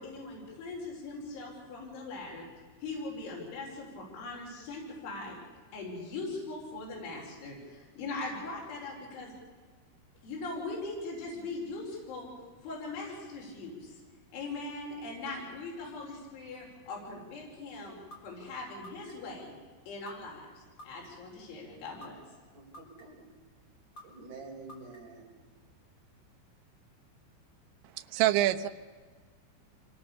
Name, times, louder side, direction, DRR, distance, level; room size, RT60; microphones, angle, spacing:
voice 1, 0.0-2.5 2.8-5.4 5.7-9.3 10.2-12.3 12.6-14.0 14.3-18.0 18.2-19.5 19.9-22.2, left 3 dB, 70° left, -2 dB, 7.5 m, -40 dB
sound 1, 18.1-18.2 18.8-19.4 20.1-20.2 20.8-21.3 22.0-22.1 22.7-23.3 24.0-24.1 24.7-25.2, equal, 25° left, 3.9 m, -48 dB
voice 2, 22.5-23.3 24.0-25.3, right 3 dB, 40° right, -1 dB, 5.8 m, -48 dB
voice 3, 27.9-28.7, right 14 dB, 75° right, 7 dB, 3.1 m, -26 dB
26.0 x 21.0 x 7.0 m, 1.5 s
omnidirectional pair, 5.7 m